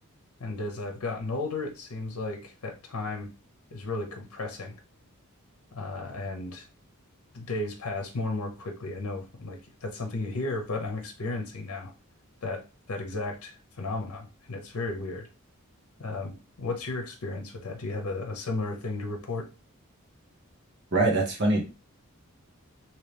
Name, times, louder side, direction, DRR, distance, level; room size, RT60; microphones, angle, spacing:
voice 1, 0.4-3.3 3.7-4.7 5.7-6.7 7.3-11.9 12.4-15.3 16.0-19.5, left 2 dB, 85° left, 3 dB, 0.7 m, -34 dB
voice 2, 20.9-21.6, right 2 dB, 50° right, 0 dB, 0.9 m, -23 dB
3.0 x 2.8 x 3.3 m, 0.30 s
head